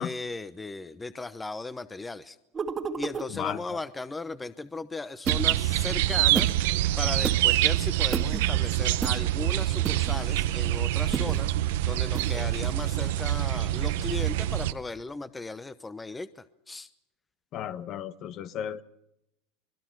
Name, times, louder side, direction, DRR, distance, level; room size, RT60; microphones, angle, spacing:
voice 1, 0.0-2.4 3.0-6.5 7.0-16.9, left 3 dB, 10° left, 0.9 m, -37 dB
sound 1, 2.5-3.3 5.3-5.6 6.4-6.6 7.2-7.4 8.1-8.4 9.0-9.2 9.8-10.2 11.1-11.4 12.1-12.3, right 5 dB, 20° right, 2.0 m, -31 dB
voice 2, 3.3-3.6 12.3-12.5 17.5-18.8, left 10 dB, 45° left, 1.3 m, -34 dB
sound 2, 5.3-14.7, right 15 dB, 75° right, 0.9 m, -26 dB
24.5 x 21.5 x 6.2 m
supercardioid pair, 120°, 0 cm